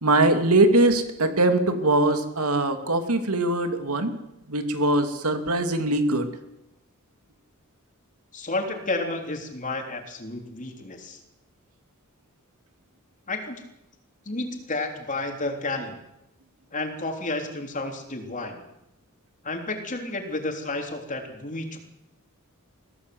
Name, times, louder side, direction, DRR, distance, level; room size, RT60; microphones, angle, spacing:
voice 1, 0.0-4.1 4.5-6.3, right 2 dB, 85° right, 7 dB, 2.6 m, -22 dB
voice 2, 8.3-11.2 13.3-13.6 14.3-16.0 16.7-18.6 19.4-21.8, left 2 dB, 35° left, 4 dB, 3.5 m, -31 dB
22.5 x 16.5 x 7.9 m, 0.90 s
head